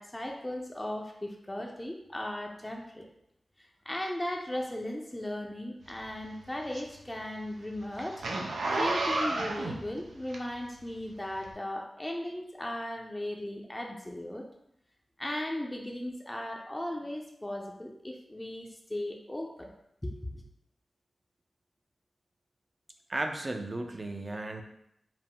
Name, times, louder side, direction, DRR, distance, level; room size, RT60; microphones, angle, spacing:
voice 1, 0.0-3.1 3.9-8.2 8.7-14.5 15.2-19.7 20.0-20.4, left 1 dB, 20° left, 0 dB, 0.5 m, -37 dB
Zipper (clothing), 5.9-10.8 11.4-11.5, right 2 dB, 85° right, 0.5 m, -32 dB
voice 2, 23.1-24.6, right 2 dB, 40° right, 4 dB, 0.5 m, -34 dB
4.8 x 2.0 x 3.6 m, 0.78 s
cardioid pair, 50°, 0 cm